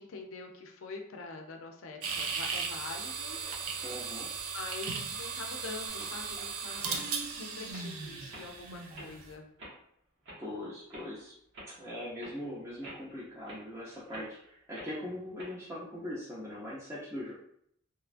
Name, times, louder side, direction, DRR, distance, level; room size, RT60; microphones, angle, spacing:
voice 1, 0.0-3.4 4.5-7.0 7.4-9.5, left 3 dB, 70° left, 3 dB, 0.5 m, -44 dB
sound 1, 2.0-9.3, right 5 dB, 90° right, 0.5 m, -37 dB
voice 2, 3.8-4.3 10.4-11.3 11.7-17.3, left 1 dB, 15° right, -8 dB, 0.5 m, -41 dB
sound 2, 5.9-6.4 6.8-7.0 7.5-7.9 8.3-8.5 8.9-9.1 9.6-9.8 10.2-10.4 10.9-11.1 11.5-11.7 12.2-12.4 12.8-13.1 13.5-13.6 14.1-14.3 14.7-14.9 15.4-15.5, right 1 dB, 65° right, 0.9 m, -47 dB
3.1 x 2.3 x 2.5 m, 0.70 s
head